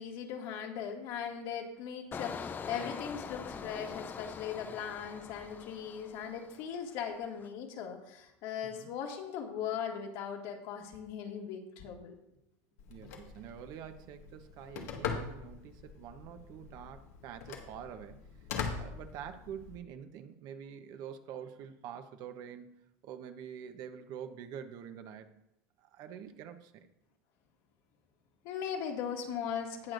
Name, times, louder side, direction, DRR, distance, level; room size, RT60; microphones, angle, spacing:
voice 1, 0.0-12.2 28.4-29.9, left 8 dB, 60° left, 1 dB, 2.0 m, -39 dB
Engine, 2.1-6.8 7.1-7.5, left 6 dB, 25° left, 0.5 m, -43 dB
Telephone, 12.8-19.8, left 6 dB, 85° left, 1.7 m, -42 dB
voice 2, 12.9-18.2 18.7-25.3 25.8-26.9, right 8 dB, 55° right, 8 dB, 1.0 m, -46 dB
18.5 x 6.3 x 2.6 m, 0.84 s
supercardioid pair, 115°, 8 cm